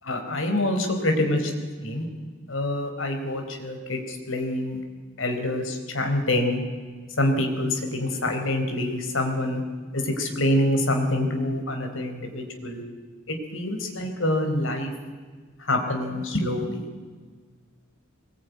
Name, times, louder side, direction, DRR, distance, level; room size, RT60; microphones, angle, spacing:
voice 1, 0.0-1.4 1.8-2.1 2.5-4.8 5.2-6.6 7.2-9.6 9.9-12.8 13.3-14.9 15.6-16.8, left 1 dB, 85° left, 4 dB, 4.4 m, -26 dB
23.0 x 20.5 x 9.5 m, 1.5 s
head